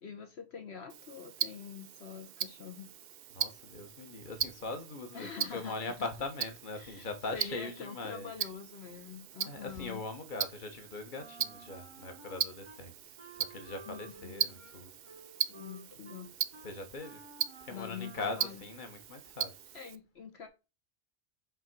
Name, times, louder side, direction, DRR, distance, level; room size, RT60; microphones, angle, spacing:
voice 1, 0.0-2.9 5.1-6.1 6.8-10.0 13.9-14.7 15.5-16.3 17.7-18.6 19.7-20.5, left 6 dB, 70° left, 1.2 m, -45 dB
Tick-tock, 0.9-20.0, right 10 dB, 65° right, 0.7 m, -40 dB
voice 2, 3.3-8.3 9.4-13.1 13.5-14.9 16.6-17.2 17.6-19.5, left 3 dB, 50° left, 1.3 m, -41 dB
Wind instrument woodwind instrument, 11.2-12.8 13.2-18.5, right 3 dB, 35° right, 0.6 m, -54 dB
5.9 x 3.6 x 6.0 m
omnidirectional pair, 1.1 m